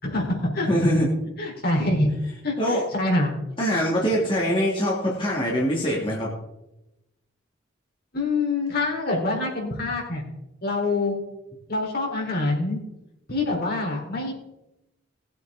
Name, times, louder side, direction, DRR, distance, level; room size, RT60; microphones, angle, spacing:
voice 1, 0.0-0.9 1.4-2.1 2.4-3.3 8.1-10.2 10.6-11.2 11.7-12.8 13.3-14.3, left 2 dB, 50° left, 0 dB, 3.6 m, -25 dB
voice 2, 0.7-1.1 2.6-2.8 3.6-6.3, equal, 25° left, -4 dB, 2.4 m, -23 dB
19.5 x 8.4 x 3.7 m, 0.93 s
head